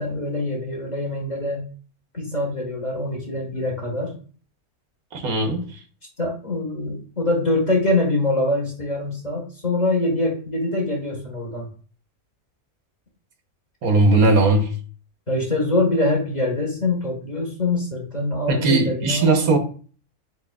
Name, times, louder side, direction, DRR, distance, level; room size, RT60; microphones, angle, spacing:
voice 1, 0.0-1.6 2.1-4.1 6.2-11.7 15.3-19.5, left 2 dB, 30° left, 1.5 m, -24 dB
voice 2, 5.1-5.8 13.8-14.7 18.5-19.6, right 2 dB, 80° right, 1.3 m, -18 dB
7.5 x 3.0 x 2.3 m
omnidirectional pair, 1.5 m